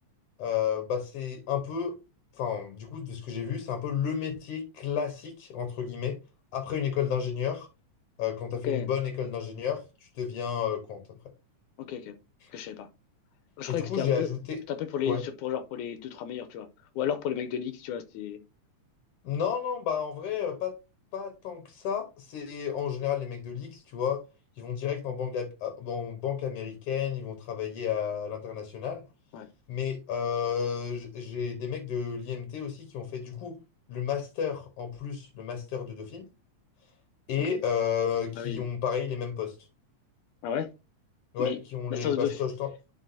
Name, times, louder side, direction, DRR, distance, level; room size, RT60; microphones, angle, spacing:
voice 1, 0.4-1.9 2.3-6.2 6.5-7.7 8.2-11.0 12.4-12.5 13.7-14.6 15.0-15.2 19.2-20.7 21.1-24.2 24.6-29.0 29.7-33.6 33.9-36.3 37.3-39.6 41.3-42.7, left 8 dB, 60° left, 1.8 m, -32 dB
voice 2, 11.8-12.1 12.5-12.9 13.6-14.3 14.7-16.7 17.0-18.4 29.3-29.5 37.5-37.6 38.4-38.6 40.4-40.7 41.4-41.6 41.9-42.4, left 9 dB, 85° left, 2.1 m, -32 dB
10.5 x 4.7 x 2.7 m
omnidirectional pair, 3.5 m